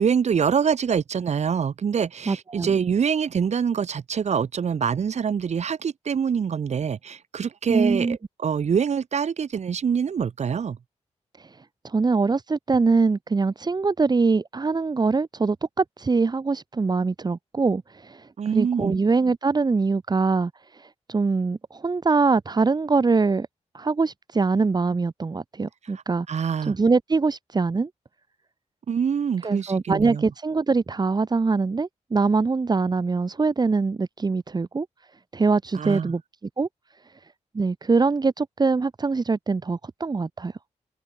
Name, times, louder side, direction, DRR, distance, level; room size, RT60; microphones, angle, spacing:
voice 1, 0.0-10.8 18.4-19.0 25.9-26.0 26.3-26.7 28.9-30.2 35.7-36.1, right 7 dB, 65° right, 5.0 m, -25 dB
voice 2, 2.3-2.8 7.7-8.2 11.4-11.5 11.8-23.5 23.7-26.3 26.6-27.9 29.4-34.9 35.3-36.2 36.6-36.7 37.5-40.5, right 4 dB, 35° right, 3.3 m, -23 dB
wide cardioid pair, 115°, 12 cm